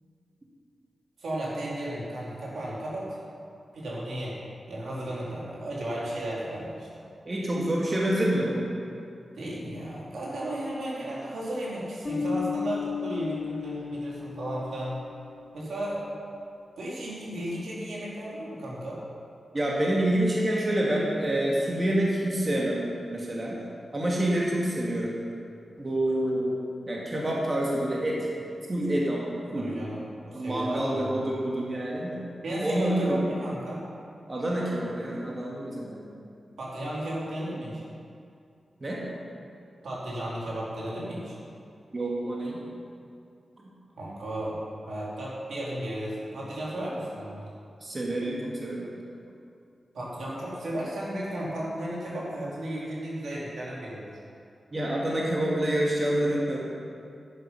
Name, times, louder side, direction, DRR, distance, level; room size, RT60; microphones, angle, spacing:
voice 1, 1.2-3.2 3.7-4.4 4.7-6.9 9.4-15.0 15.5-16.0 16.8-19.0 29.5-31.2 32.4-33.9 36.6-37.8 39.8-41.4 44.0-44.6 44.9-47.4 49.9-54.0, right 1 dB, 85° right, -6 dB, 3.5 m, -34 dB
voice 2, 7.3-8.7 19.5-22.8 23.1-23.6 23.9-25.1 25.8-26.5 26.9-28.3 28.7-29.7 30.3-32.2 32.6-33.2 34.3-36.0 38.8-39.0 41.9-42.6 47.8-48.9 54.7-56.6, right 1 dB, 30° right, -4 dB, 2.0 m, -27 dB
Bass guitar, 12.0-15.5, left 6 dB, 30° left, 1.9 m, -34 dB
11.5 x 9.3 x 5.7 m, 2.4 s
wide cardioid pair, 120°, 0 cm